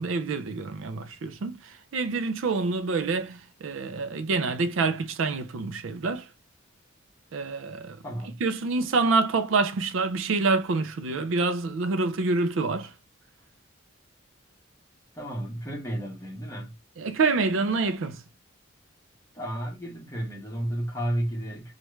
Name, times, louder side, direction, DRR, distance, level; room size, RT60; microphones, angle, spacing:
voice 1, 0.0-6.3 7.3-8.0 8.4-12.9 17.0-18.2, right 3 dB, 75° right, 0.4 m, -27 dB
voice 2, 8.0-8.4 15.1-16.7 19.3-21.7, right 1 dB, 15° left, 1.2 m, -32 dB
3.0 x 2.4 x 3.1 m
head